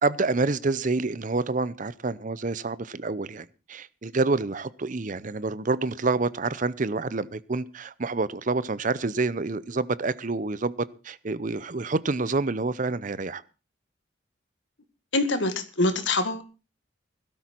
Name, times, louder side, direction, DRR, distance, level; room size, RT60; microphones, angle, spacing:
voice 1, 0.0-13.4, right 3 dB, 40° right, 18 dB, 0.6 m, -28 dB
voice 2, 15.1-16.4, left 2 dB, 70° left, 9 dB, 1.9 m, -24 dB
16.5 x 13.0 x 4.5 m, 0.33 s
head